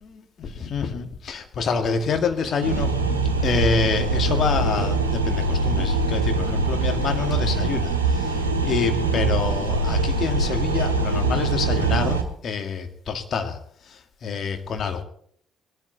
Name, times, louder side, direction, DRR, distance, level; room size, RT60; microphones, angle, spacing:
voice 1, 0.0-2.9 3.4-13.6 13.8-15.0, left 5 dB, 50° left, 6 dB, 2.0 m, -27 dB
sound 1, 2.6-12.2, right 3 dB, 85° right, 1.2 m, -23 dB
21.0 x 12.5 x 4.2 m, 0.64 s
figure-of-eight pair, 45°, 0 cm